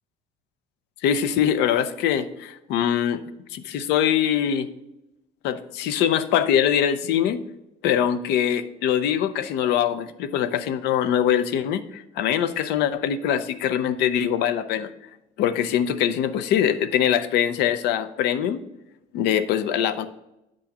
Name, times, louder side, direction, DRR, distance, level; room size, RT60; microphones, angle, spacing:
voice 1, 1.0-3.2 3.5-4.7 5.4-7.4 7.8-14.9 15.4-18.6 19.1-20.1, left 9 dB, 85° left, 12 dB, 0.6 m, -23 dB
10.0 x 6.2 x 2.9 m, 0.89 s
cardioid pair, 110°, 17 cm